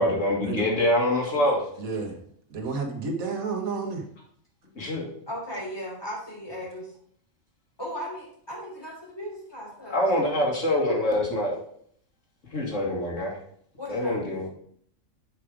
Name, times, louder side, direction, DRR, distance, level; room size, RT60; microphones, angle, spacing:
voice 1, 0.0-1.6 4.8-5.1 9.9-11.6 12.5-13.3 13.9-14.5, left 1 dB, 65° left, -2 dB, 2.3 m, -25 dB
voice 2, 1.8-2.2 2.5-4.0, right 4 dB, 85° right, 3 dB, 1.7 m, -31 dB
voice 3, 5.3-6.9 7.8-10.0 10.4-10.6 13.8-14.2, equal, 15° left, -5 dB, 3.5 m, -37 dB
7.4 x 5.3 x 4.8 m, 0.64 s
omnidirectional pair, 1.4 m